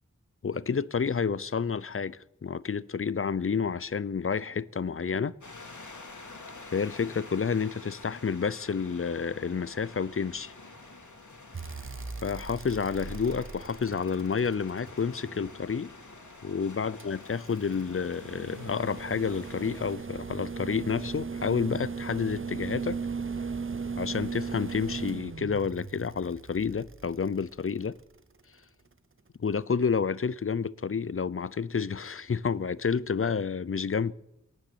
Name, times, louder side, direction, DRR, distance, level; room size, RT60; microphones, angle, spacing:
voice 1, 0.4-5.4 6.7-10.5 12.2-15.9 16.4-23.0 24.0-28.0 29.4-34.1, left 6 dB, 45° left, 0.5 m, -30 dB
sound 1, 5.4-20.0, left 3 dB, 80° left, 2.4 m, -48 dB
sound 2, 11.5-15.7 17.0-28.2 29.7-29.8, right 5 dB, 45° right, 0.8 m, -38 dB
17.5 x 7.0 x 9.6 m
wide cardioid pair, 40°, 29 cm